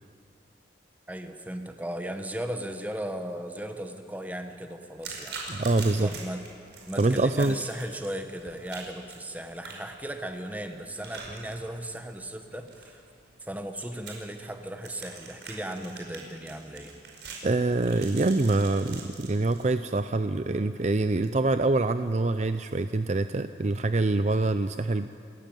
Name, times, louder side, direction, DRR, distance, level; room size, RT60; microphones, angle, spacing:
voice 1, 1.1-5.4 6.0-6.4 6.9-13.0 13.4-17.0, right 1 dB, 10° right, 6 dB, 1.5 m, -36 dB
sound 1, 5.0-19.6, right 4 dB, 70° right, 5.2 m, -45 dB
voice 2, 5.5-6.1 7.0-7.6 17.4-25.1, right 2 dB, 40° right, 10 dB, 0.5 m, -25 dB
29.5 x 14.5 x 9.1 m, 2.5 s
head